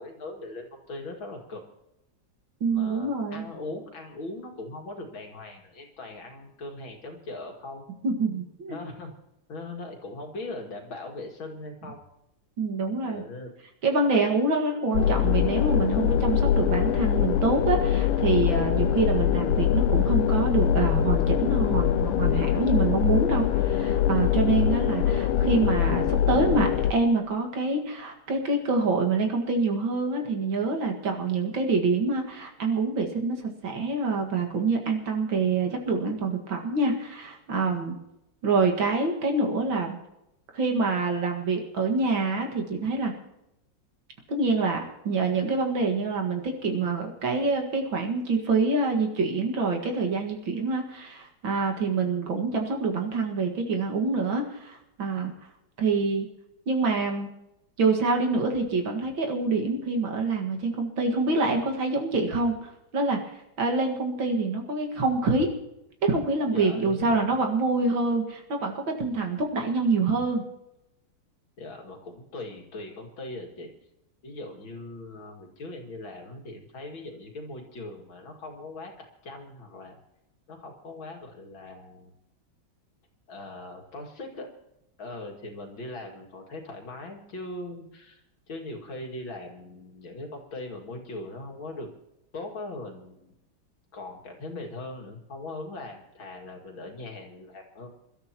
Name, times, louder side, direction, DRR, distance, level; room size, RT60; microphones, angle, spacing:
voice 1, 0.0-1.6 2.7-7.8 8.7-9.1 9.5-12.0 13.1-13.5 66.5-67.3 71.6-73.7 74.2-80.0 80.5-82.1 83.3-84.5 85.0-91.9 92.3-93.3 93.9-97.9, left 2 dB, 70° left, 1 dB, 3.0 m, -40 dB
voice 2, 2.6-3.5 8.0-8.8 12.6-13.2 13.8-38.0 38.4-40.0 40.5-43.1 44.3-55.3 55.8-56.3 56.7-57.3 57.8-63.2 63.6-65.5 66.0-70.4, right 3 dB, 70° right, 2 dB, 2.6 m, -26 dB
sound 1, 14.9-26.9, left 9 dB, 85° left, 1.6 m, -23 dB
27.5 x 13.0 x 3.0 m, 0.86 s
omnidirectional pair, 2.2 m